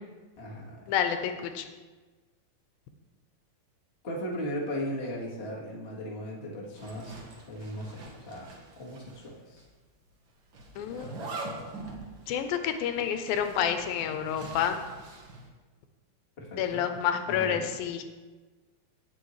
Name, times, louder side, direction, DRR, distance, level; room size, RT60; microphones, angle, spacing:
voice 1, 0.4-0.9 4.0-7.2 7.5-8.5 8.8-9.6 16.4-16.9 17.3-17.7, equal, 40° left, -3 dB, 0.8 m, -37 dB
voice 2, 0.9-1.7 10.8-11.1 12.3-14.8 16.6-18.0, left 8 dB, 85° left, 8 dB, 2.5 m, -29 dB
Zipper (clothing), 6.7-9.3 9.6-9.7 10.5-15.5, right 2 dB, 65° right, 1.2 m, -43 dB
17.5 x 6.3 x 3.2 m, 1.3 s
omnidirectional pair, 4.1 m